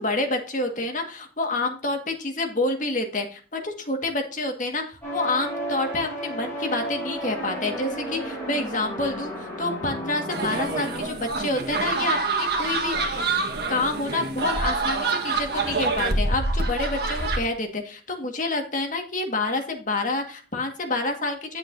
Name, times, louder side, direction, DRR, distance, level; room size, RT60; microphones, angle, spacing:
voice 1, 0.0-13.3 13.7-21.6, left 2 dB, 45° left, 4 dB, 1.9 m, -28 dB
sound 1, 5.0-11.0, equal, 15° left, 4.8 m, -33 dB
sound 2, 10.3-17.4, right 3 dB, 55° right, 1.6 m, -26 dB
10.5 x 7.0 x 2.7 m, 0.37 s
head